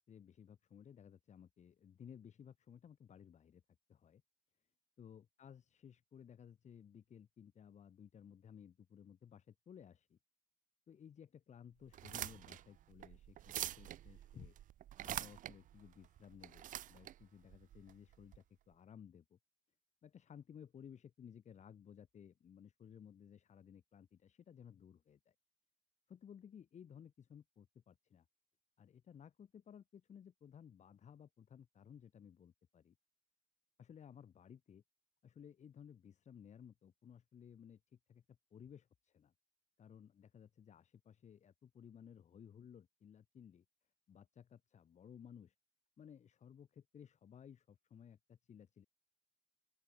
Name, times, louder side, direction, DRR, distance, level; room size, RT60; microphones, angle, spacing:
voice 1, 0.1-3.6 3.9-4.2 5.0-10.2 10.9-14.6 15.0-19.4 20.0-25.3 26.1-28.3 28.8-33.0 33.8-34.8 35.2-39.3 39.8-43.6 44.1-45.5 46.0-48.9, left 8 dB, 45° left, 2.3 m, -58 dB
sound 1, 11.9-18.4, right 12 dB, 50° right, 0.5 m, -46 dB
open air
cardioid pair, 110°, 17 cm